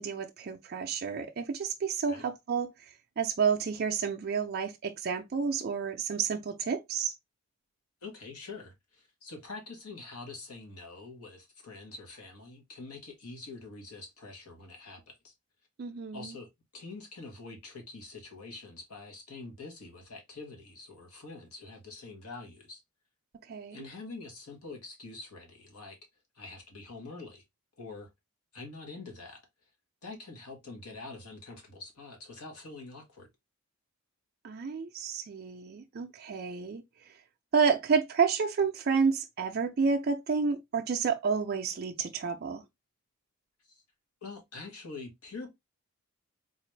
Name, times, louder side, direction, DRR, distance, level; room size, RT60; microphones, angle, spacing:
voice 1, 0.0-7.1 15.8-16.4 23.5-23.8 34.4-37.1 37.5-42.6, right 5 dB, 45° right, 0.4 m, -30 dB
voice 2, 8.0-15.3 16.1-16.5 16.7-22.8 23.7-26.0 26.3-27.4 27.8-28.1 28.5-29.4 30.0-33.3 43.7-43.8 44.2-45.5, left 3 dB, 85° left, 1.3 m, -45 dB
4.0 x 2.4 x 3.1 m
head